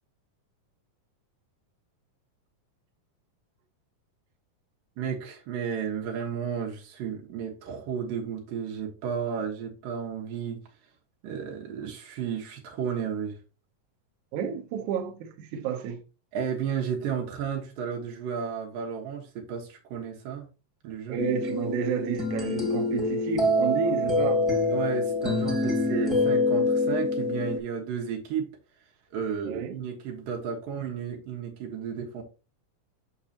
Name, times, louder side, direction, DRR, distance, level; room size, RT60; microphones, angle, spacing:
voice 1, 5.0-10.6 11.2-13.4 16.3-20.5 20.8-21.2 24.7-28.5 29.1-32.2, right 7 dB, 90° right, 3.0 m, -33 dB
voice 2, 14.3-16.0 21.1-24.4 29.4-29.7, right 7 dB, 70° right, 2.2 m, -31 dB
sound 1, 21.2-27.6, left 2 dB, ahead, 1.2 m, -26 dB
6.4 x 6.3 x 2.8 m
omnidirectional pair, 3.9 m